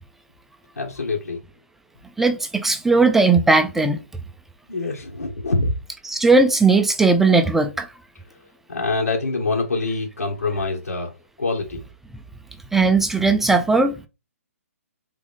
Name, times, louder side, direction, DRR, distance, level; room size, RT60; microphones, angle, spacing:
voice 1, 0.8-1.4 4.7-5.7 8.7-11.1 11.4-11.8, left 3 dB, 90° left, 1.6 m, -25 dB
voice 2, 2.2-4.0 6.1-7.9 12.7-14.0, right 3 dB, 5° right, 0.3 m, -17 dB
3.7 x 3.5 x 3.5 m
hypercardioid pair, 140°, 8 cm